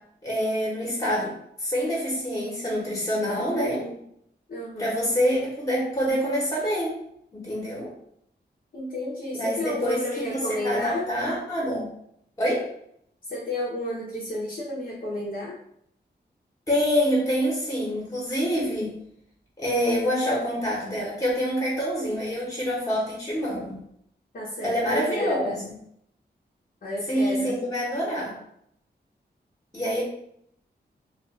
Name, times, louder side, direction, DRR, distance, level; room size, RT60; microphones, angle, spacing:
voice 1, 0.2-1.3 1.6-3.8 4.8-6.9 7.3-7.9 9.3-11.9 12.4-12.6 16.7-18.9 19.6-23.8 24.6-25.7 27.1-28.4 29.7-30.0, equal, 20° left, -5 dB, 1.1 m, -26 dB
voice 2, 3.4-4.0 4.5-4.9 8.7-11.1 13.2-15.6 24.3-25.6 26.8-27.5, left 1 dB, 55° left, -6 dB, 0.8 m, -32 dB
2.5 x 2.4 x 3.7 m, 0.71 s
wide cardioid pair, 110°, 18 cm